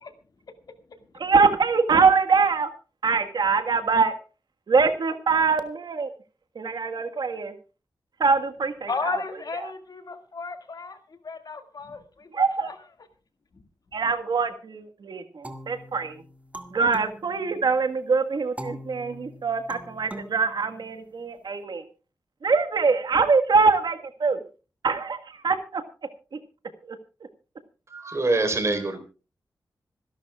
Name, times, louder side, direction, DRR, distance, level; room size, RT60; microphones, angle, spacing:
voice 1, 1.2-2.7 3.0-4.1 4.7-6.1 6.5-7.5 8.2-8.9 12.3-12.7 13.9-16.2 16.7-21.8 22.4-24.4 24.8-25.2 25.4-25.8 26.9-27.0, right 4 dB, 65° right, 8 dB, 1.5 m, -23 dB
voice 2, 8.9-12.8 13.5-13.6, left 4 dB, 55° left, 7 dB, 2.1 m, -34 dB
sound 1, 15.4-17.9 18.6-21.4, right 1 dB, 15° right, 1.9 m, -42 dB
voice 3, 27.9-29.0, right 2 dB, 35° right, 8 dB, 3.9 m, -25 dB
26.0 x 11.5 x 2.3 m, 0.34 s
wide cardioid pair, 125°, 8 cm